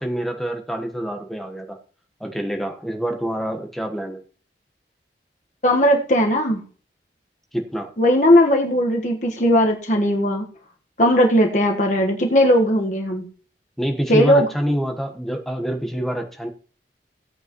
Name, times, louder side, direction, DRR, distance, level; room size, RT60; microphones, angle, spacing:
voice 1, 0.0-1.8 2.2-4.2 7.5-7.9 13.8-16.5, equal, ahead, 4 dB, 1.2 m, -26 dB
voice 2, 5.6-6.6 8.0-10.4 11.0-13.3 14.1-14.5, equal, 45° left, 2 dB, 1.4 m, -17 dB
16.5 x 8.7 x 3.1 m, 0.41 s
head